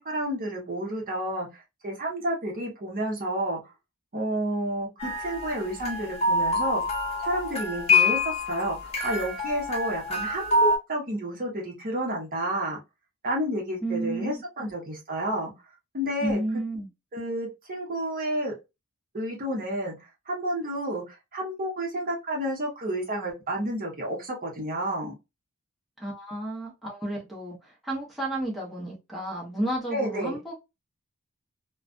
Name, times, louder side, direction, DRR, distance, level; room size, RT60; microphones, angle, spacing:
voice 1, 0.0-3.6 4.1-7.0 7.2-12.8 13.2-15.5 15.9-16.4 17.1-18.6 19.1-25.1 29.9-30.4, right 1 dB, 40° right, 0.9 m, -30 dB
sound 1, 5.0-10.8, left 2 dB, 30° left, 0.8 m, -26 dB
voice 2, 13.8-14.7 16.2-16.9 26.0-30.6, right 1 dB, ahead, 0.8 m, -32 dB
2.3 x 2.2 x 2.4 m
head